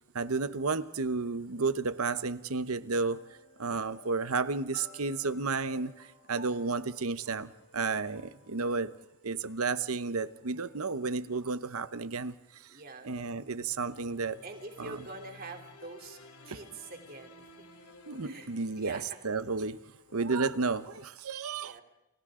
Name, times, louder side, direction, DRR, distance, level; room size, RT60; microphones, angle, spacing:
voice 1, 0.1-3.2 3.6-8.9 9.2-12.4 13.0-14.4 14.8-15.1 16.5-16.6 18.1-19.8 20.1-21.8, right 4 dB, 75° right, 13 dB, 0.9 m, -32 dB
sound 1, 1.2-2.2 3.0-11.1 13.1-21.1, left 2 dB, 80° left, 2.6 m, -56 dB
voice 2, 10.6-11.0 12.7-13.1 14.4-16.2 16.4-17.4 18.2-18.5 18.8-19.2 21.6-21.8, right 2 dB, 45° right, 3 dB, 3.3 m, -45 dB
29.5 x 29.0 x 3.8 m, 1.0 s
head